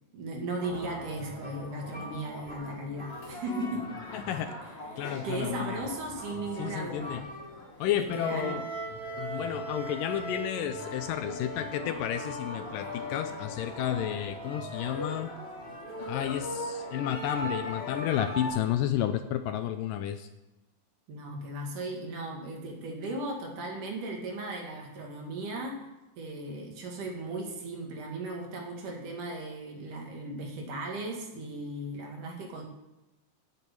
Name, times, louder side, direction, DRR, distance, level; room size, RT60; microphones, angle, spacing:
voice 1, 0.1-4.0 4.9-7.3 8.0-8.6 21.1-25.8 26.2-32.6, right 2 dB, 65° right, 0 dB, 3.4 m, -37 dB
sound 1, 0.6-18.5, equal, 25° left, 1.6 m, -39 dB
voice 2, 4.1-4.5 5.0-5.9 6.6-7.2 7.8-8.6 9.2-15.3 16.1-20.3, left 10 dB, 80° left, 9 dB, 2.1 m, -31 dB
9.2 x 8.2 x 8.6 m, 1.0 s
omnidirectional pair, 4.2 m